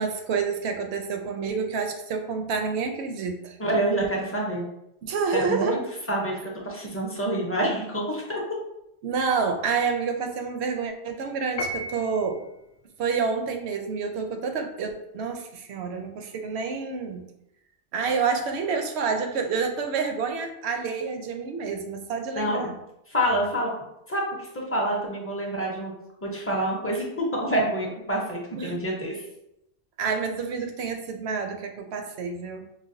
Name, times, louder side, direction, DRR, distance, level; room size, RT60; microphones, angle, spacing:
voice 1, 0.0-3.6 5.0-5.8 9.0-12.4 13.0-17.3 17.9-22.7 28.6-28.8 30.0-32.7, right 5 dB, 70° right, 5 dB, 0.8 m, -28 dB
voice 2, 3.6-4.7 5.3-5.8 6.1-8.4 22.4-22.7 23.1-23.7 24.1-25.9 26.2-29.2, right 1 dB, 15° left, -3 dB, 0.5 m, -27 dB
Piano, 11.6-12.5, left 1 dB, 85° left, 0.9 m, -33 dB
4.9 x 2.2 x 2.6 m, 0.84 s
omnidirectional pair, 1.2 m